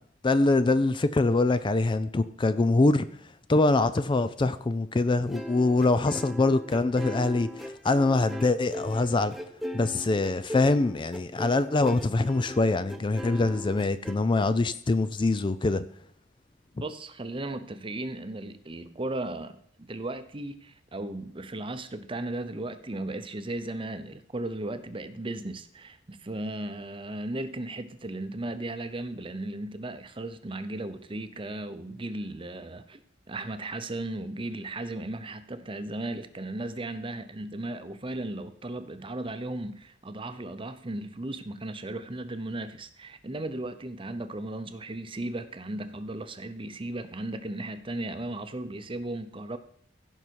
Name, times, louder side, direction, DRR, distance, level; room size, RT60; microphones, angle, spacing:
voice 1, 0.2-3.1 3.5-9.4 9.7-15.8, left 2 dB, 25° left, 0.4 m, -24 dB
sound 1, 5.3-14.1, left 1 dB, ahead, 0.9 m, -39 dB
voice 2, 16.8-33.0 33.3-49.6, right 2 dB, 30° right, 0.8 m, -36 dB
16.0 x 5.6 x 4.6 m
head